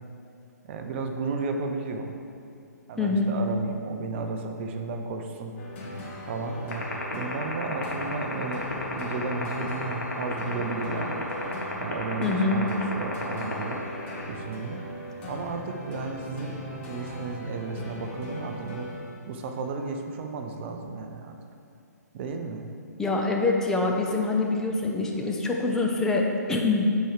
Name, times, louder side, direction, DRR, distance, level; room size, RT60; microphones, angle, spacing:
voice 1, 0.6-2.1 2.9-5.6 6.3-6.8 7.1-11.2 11.8-13.8 14.3-14.8 15.2-16.6 16.9-18.9 19.3-21.4 22.1-22.7, right 4 dB, 40° right, 4 dB, 0.7 m, -33 dB
voice 2, 3.0-3.3 12.2-12.7 23.0-26.9, left 3 dB, 5° left, 0 dB, 0.6 m, -25 dB
sound 1, 5.6-19.3, equal, 40° left, 1.4 m, -39 dB
sound 2, 6.7-14.3, left 4 dB, 65° left, 1.3 m, -32 dB
7.7 x 4.6 x 4.8 m, 2.5 s
figure-of-eight pair, 130°, 10 cm